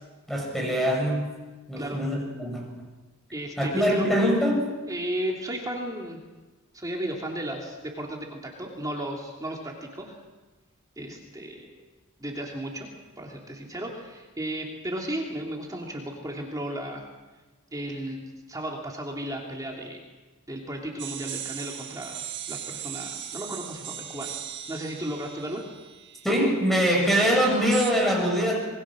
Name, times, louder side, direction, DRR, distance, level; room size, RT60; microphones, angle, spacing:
voice 1, 0.3-1.3 1.7-2.8 3.6-4.7 26.2-28.6, equal, ahead, 0 dB, 6.8 m, -23 dB
voice 2, 3.3-4.1 4.9-6.2 6.7-10.2 11.0-11.9 12.2-12.9 13.2-17.1 17.7-18.2 18.5-20.0 20.5-22.2 22.5-24.3 24.7-25.6, right 1 dB, 15° right, -1 dB, 2.9 m, -34 dB
sound 1, 21.0-26.7 27.7-27.9, right 10 dB, 55° right, 1.9 m, -38 dB
26.5 x 22.0 x 6.3 m, 1.2 s
head